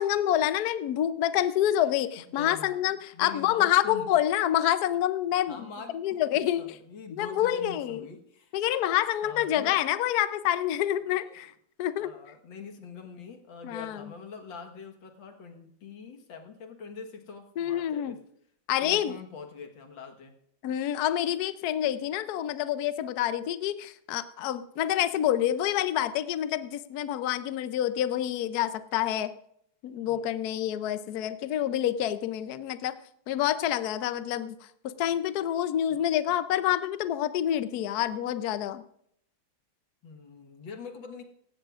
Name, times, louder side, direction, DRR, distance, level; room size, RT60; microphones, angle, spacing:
voice 1, 0.0-5.6 5.9-6.6 7.1-8.1 8.5-11.5 11.8-12.1 13.6-14.0 17.6-18.1 18.7-19.2 20.6-29.3 29.8-32.9 33.3-34.6 34.8-38.8, left 11 dB, 80° left, 12 dB, 0.8 m, -27 dB
voice 2, 2.3-2.8 3.1-4.2 5.5-8.5 9.2-9.8 11.1-11.4 12.0-18.2 18.8-20.3 30.1-30.5 35.9-36.2 40.0-41.2, left 5 dB, 60° left, 4 dB, 2.1 m, -44 dB
17.5 x 15.5 x 2.4 m, 0.70 s
omnidirectional pair, 2.4 m